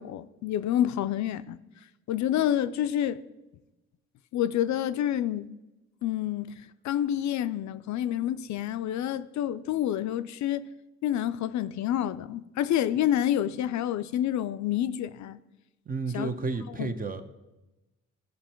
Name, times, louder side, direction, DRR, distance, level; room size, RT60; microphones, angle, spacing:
voice 1, 0.0-1.6 2.1-3.2 4.3-5.5 6.0-6.5 6.8-10.7 11.0-15.4 16.1-16.4 16.8-16.9, left 11 dB, 70° left, 0.5 m, -28 dB
voice 2, 15.9-17.2, right 4 dB, 30° right, 0.9 m, -31 dB
14.5 x 5.4 x 4.4 m
cardioid pair, 90°, 30 cm